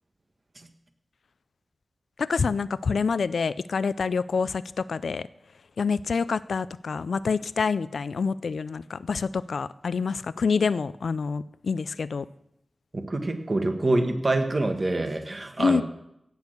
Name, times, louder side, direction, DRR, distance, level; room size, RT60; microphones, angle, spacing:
voice 1, 2.2-5.3 5.8-12.3 15.6-15.8, left 5 dB, 85° left, 17 dB, 0.4 m, -27 dB
voice 2, 12.9-15.8, right 2 dB, 40° right, 6 dB, 1.5 m, -26 dB
16.5 x 6.5 x 6.7 m, 0.80 s
wide cardioid pair, 95°, 0 cm